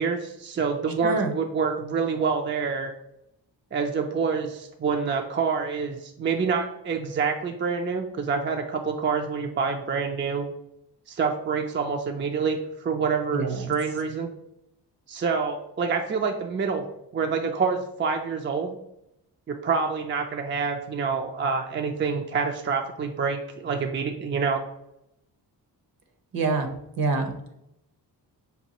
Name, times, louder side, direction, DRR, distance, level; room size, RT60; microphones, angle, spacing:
voice 1, 0.0-2.9 3.7-10.5 11.1-14.3 15.1-16.8 17.1-18.8 19.5-24.6, right 5 dB, 30° right, 4 dB, 0.4 m, -27 dB
voice 2, 13.3-13.7 26.3-26.7 27.0-27.3, right 3 dB, 60° right, 5 dB, 0.8 m, -25 dB
5.3 x 2.3 x 2.9 m, 0.82 s
cardioid pair, 80°, 41 cm